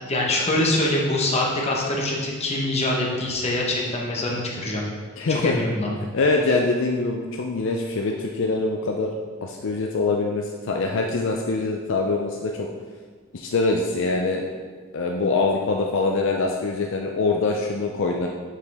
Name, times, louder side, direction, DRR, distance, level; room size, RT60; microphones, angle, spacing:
voice 1, 0.1-4.8 5.3-5.9, left 1 dB, 30° left, -2 dB, 1.1 m, -24 dB
voice 2, 5.2-5.6 6.1-9.1 9.4-12.7 13.3-14.5 14.9-18.3, left 3 dB, 65° left, 1 dB, 0.5 m, -24 dB
6.6 x 5.1 x 3.5 m, 1.5 s
head